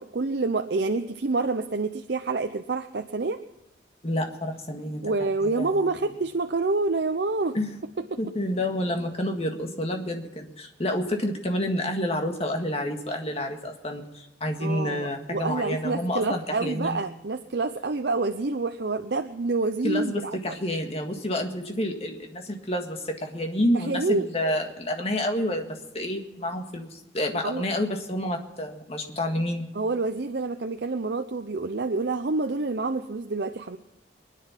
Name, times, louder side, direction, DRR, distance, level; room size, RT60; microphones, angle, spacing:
voice 1, 0.0-3.4 5.0-7.6 8.0-8.2 14.6-20.6 23.7-24.3 27.4-27.6 29.7-33.8, right 3 dB, 65° right, 7 dB, 0.6 m, -27 dB
voice 2, 4.0-5.0 5.6-5.9 7.5-7.8 8.2-17.0 19.8-25.7 25.9-29.7, left 1 dB, 35° left, 3 dB, 1.8 m, -29 dB
24.0 x 10.0 x 5.9 m, 0.96 s
head